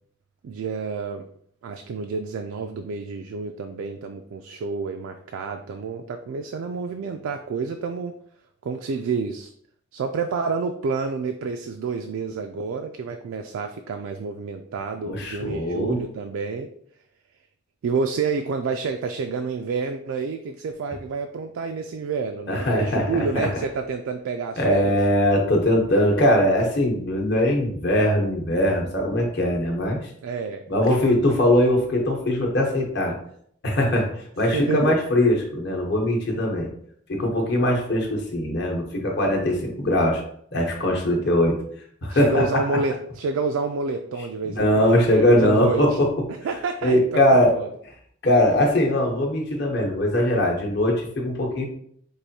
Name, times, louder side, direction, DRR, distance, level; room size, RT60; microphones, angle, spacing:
voice 1, 0.4-1.3 1.6-8.2 8.6-9.5 9.9-16.7 17.8-25.0 30.2-30.6 34.5-34.9 42.1-46.0 46.4-47.7, right 4 dB, 80° right, 5 dB, 0.3 m, -29 dB
voice 2, 15.0-16.0 22.5-23.5 24.6-30.0 30.7-33.1 33.6-34.1 34.4-36.7 37.1-40.2 40.5-41.6 42.0-42.8 44.4-46.1 46.8-47.5 48.2-51.6, left 1 dB, 55° left, 0 dB, 0.9 m, -21 dB
4.7 x 2.5 x 2.7 m, 0.65 s
head